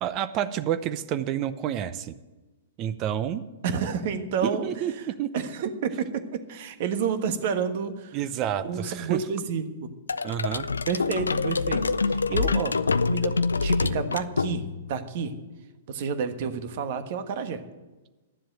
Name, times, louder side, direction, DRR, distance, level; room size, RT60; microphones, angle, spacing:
voice 1, 0.0-2.2 2.8-3.4 4.4-5.3 8.1-9.2 10.2-10.7, right 10 dB, 35° right, 12 dB, 0.6 m, -29 dB
voice 2, 3.6-4.8 5.3-8.2 8.6-9.9 10.9-15.3 15.9-17.6, right 6 dB, 55° right, 9 dB, 1.4 m, -30 dB
sound 1, 10.1-14.9, left 4 dB, 85° left, 0.4 m, -26 dB
11.5 x 7.7 x 8.9 m, 1.1 s
hypercardioid pair, 115°, 0 cm